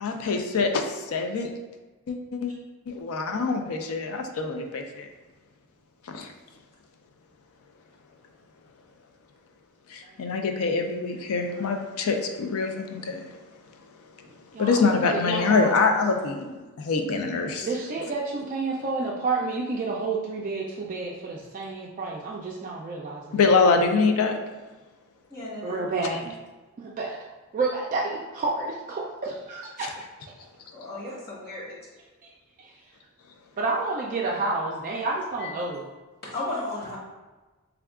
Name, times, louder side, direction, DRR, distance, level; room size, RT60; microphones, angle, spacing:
voice 1, 0.0-1.5 2.1-2.5 2.9-5.1 6.1-6.3 9.9-13.2 14.6-16.5 16.8-17.8 23.3-24.4 26.0-26.2, left 4 dB, 65° left, 4 dB, 0.4 m, -25 dB
voice 2, 14.5-16.0 17.6-23.4 25.6-26.4 26.8-27.2 27.5-30.1 32.6-32.7 33.6-35.9, right 3 dB, 35° right, -3 dB, 0.3 m, -30 dB
voice 3, 25.3-25.8 30.7-31.9 35.4-35.5 36.3-37.0, left 2 dB, 45° left, -5 dB, 1.1 m, -34 dB
3.5 x 2.3 x 3.5 m, 1.2 s
head